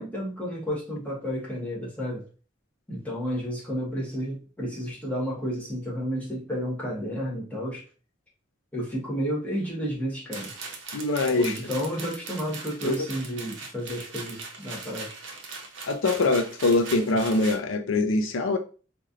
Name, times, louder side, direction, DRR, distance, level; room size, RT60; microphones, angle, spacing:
voice 1, 0.0-2.3 2.9-7.9 8.7-10.5 11.4-15.2, equal, 10° left, 1.1 m, -31 dB
sound 1, 10.3-17.6, right 4 dB, 70° right, 0.8 m, -40 dB
voice 2, 10.9-11.6 12.8-13.1 15.9-18.6, left 3 dB, 85° left, 0.5 m, -23 dB
4.2 x 2.6 x 2.5 m
head